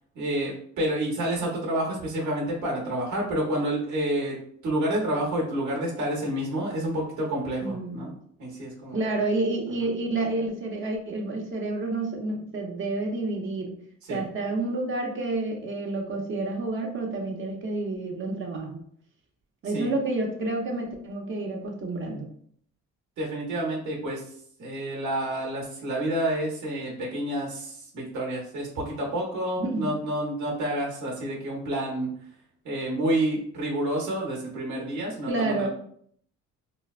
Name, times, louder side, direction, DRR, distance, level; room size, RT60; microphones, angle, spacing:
voice 1, 0.1-4.4 4.6-8.1 8.4-9.2 14.1-14.2 19.6-19.9 23.2-24.3 24.6-32.1 32.6-35.7, right 1 dB, 70° right, -2 dB, 1.2 m, -29 dB
voice 2, 7.6-8.0 8.9-13.8 14.1-18.8 19.6-22.3 29.6-29.9 35.3-35.7, right 2 dB, 40° right, 0 dB, 0.9 m, -29 dB
3.9 x 2.2 x 2.4 m, 0.63 s
cardioid pair, 90°, 30 cm